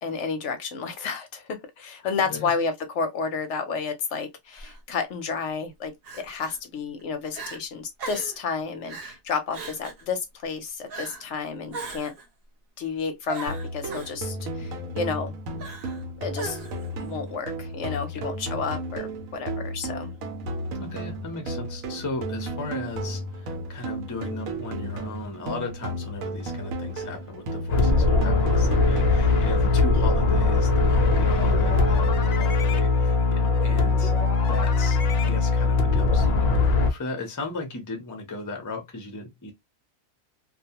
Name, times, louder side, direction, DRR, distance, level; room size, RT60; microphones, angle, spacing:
voice 1, 0.0-12.2 12.8-15.3 16.2-16.6 17.0-20.1, left 5 dB, 65° left, 0.8 m, -31 dB
voice 2, 2.0-2.5 18.1-18.3 20.8-34.1 34.5-39.5, left 3 dB, 25° left, 0.4 m, -36 dB
Crying sobbing, 4.5-4.8 6.0-6.6 7.0-7.1 7.3-7.6 8.0-8.4 8.9-9.2 9.5-10.0 10.9-11.3 11.7-12.3 13.3-14.1 15.6-16.0 16.3-16.9, right 4 dB, 50° right, 0.9 m, -38 dB
sound 1, 13.5-29.5, right 1 dB, 80° right, 1.0 m, -34 dB
sound 2, 27.7-36.9, left 3 dB, 85° left, 0.3 m, -21 dB
2.3 x 2.2 x 2.7 m
omnidirectional pair, 1.4 m